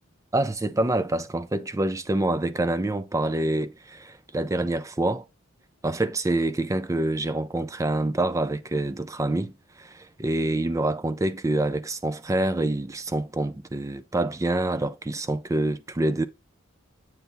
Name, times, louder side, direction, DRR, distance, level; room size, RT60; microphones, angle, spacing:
voice 1, 0.3-5.2 5.8-9.5 9.8-16.2, right 2 dB, 15° right, 0.4 m, -26 dB
8.0 x 2.8 x 5.6 m
head